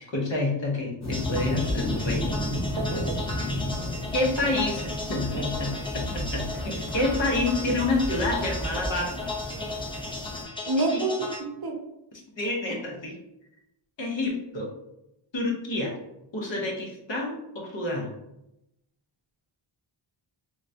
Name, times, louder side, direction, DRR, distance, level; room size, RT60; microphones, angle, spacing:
voice 1, 0.0-2.3 4.1-9.3 10.9-11.0 12.4-13.2 14.0-14.7 15.3-16.0 16.3-18.1, left 2 dB, 60° left, -1 dB, 0.9 m, -28 dB
sound 1, 1.0-10.4, left 1 dB, 35° left, 1.0 m, -33 dB
sound 2, 1.1-11.4, left 3 dB, 10° left, 0.5 m, -36 dB
voice 2, 2.8-3.2 10.7-11.8, right 2 dB, 50° right, 2 dB, 0.6 m, -28 dB
sound 3, 3.3-8.9, right 1 dB, 25° right, 0.9 m, -37 dB
3.7 x 2.2 x 2.7 m, 0.86 s
wide cardioid pair, 100°, 49 cm